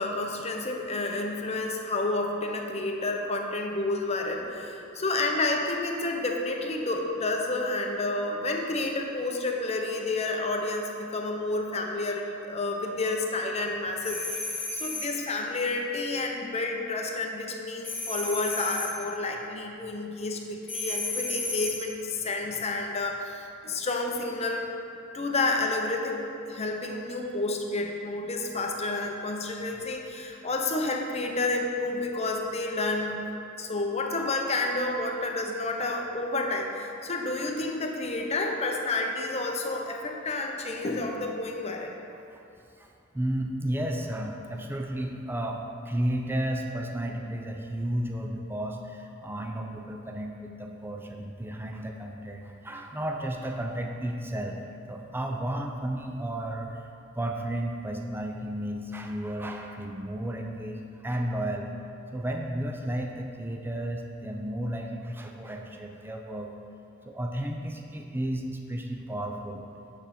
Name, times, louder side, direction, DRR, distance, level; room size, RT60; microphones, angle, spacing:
voice 1, 0.0-24.7 25.1-33.3 33.6-42.0, left 2 dB, 30° left, 2 dB, 0.8 m, -30 dB
sound 1, 14.0-15.2 17.8-19.0 20.7-21.9, left 2 dB, 10° left, 1.0 m, -33 dB
voice 2, 43.1-54.6 54.9-56.8 57.2-61.7 62.1-66.5 67.0-69.6, right 1 dB, 10° right, 2 dB, 0.5 m, -33 dB
8.3 x 6.7 x 4.3 m, 2.7 s
head